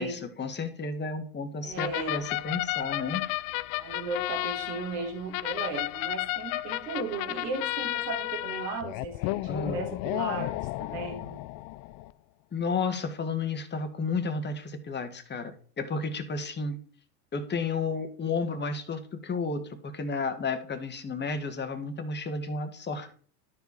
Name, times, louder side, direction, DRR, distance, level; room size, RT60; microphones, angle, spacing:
voice 1, 0.0-3.3 9.5-9.8 12.5-16.8 17.3-23.1, left 4 dB, 20° left, 8 dB, 1.5 m, -32 dB
voice 2, 1.6-2.2 3.8-10.5 10.8-11.4, right 3 dB, 90° right, 3 dB, 2.5 m, -35 dB
sound 1, 1.8-12.1, left 19 dB, 50° left, 0.5 m, -33 dB
12.5 x 4.8 x 4.1 m, 0.43 s
supercardioid pair, 105°, 47 cm